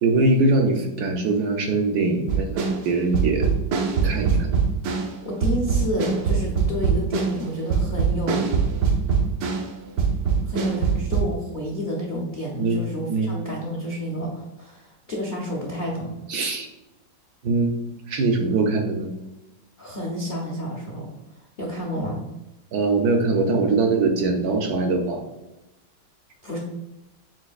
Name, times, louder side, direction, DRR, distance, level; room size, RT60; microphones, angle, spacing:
voice 1, 0.0-3.5 4.0-4.5 12.6-12.8 13.1-13.3 16.3-16.7 17.4-17.7 18.1-19.1 22.7-25.2, right 3 dB, 70° right, 3 dB, 1.0 m, -22 dB
sound 1, 2.3-5.2 5.4-9.7 10.0-11.2, right 6 dB, 90° right, 1.4 m, -22 dB
voice 2, 5.2-8.5 10.5-16.1 19.8-21.1 21.6-22.2 26.4-26.6, equal, 70° left, -3 dB, 0.4 m, -30 dB
7.4 x 2.6 x 2.3 m, 0.96 s
omnidirectional pair, 2.0 m